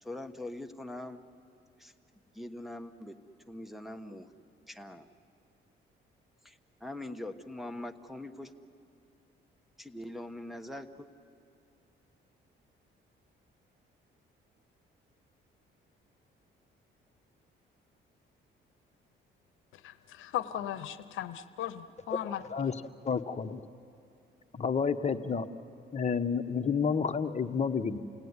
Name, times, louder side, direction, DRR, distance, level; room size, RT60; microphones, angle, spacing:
voice 1, 0.0-1.2 1.8-1.9 2.3-3.2 3.5-4.3 4.7-5.1 6.4-8.5 9.8-11.1, left 1 dB, ahead, 4 dB, 1.2 m, -42 dB
voice 2, 19.8-22.4, left 11 dB, 85° left, 13 dB, 0.8 m, -37 dB
voice 3, 23.0-23.6 24.5-25.5 25.9-28.0, left 6 dB, 35° left, 7 dB, 1.2 m, -30 dB
29.0 x 18.5 x 9.7 m, 2.6 s
cardioid pair, 90°, 20 cm